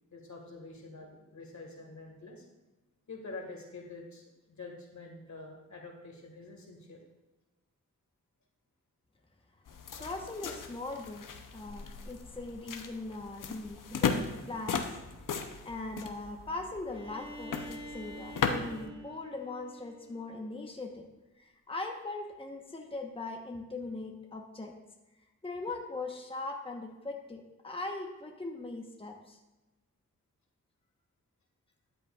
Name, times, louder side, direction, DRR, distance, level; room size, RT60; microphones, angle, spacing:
voice 1, 0.1-2.4 3.1-7.0, left 3 dB, 65° left, 1 dB, 1.9 m, -46 dB
sound 1, 9.7-18.9, left 6 dB, 80° left, 0.8 m, -37 dB
voice 2, 10.0-15.0 15.6-21.1 21.4-24.7 25.4-29.4, left 2 dB, 15° left, 1 dB, 1.1 m, -40 dB
Bowed string instrument, 16.9-20.7, right 1 dB, 15° right, 1.5 m, -47 dB
12.5 x 7.8 x 2.4 m, 1.0 s
cardioid pair, 55°, 32 cm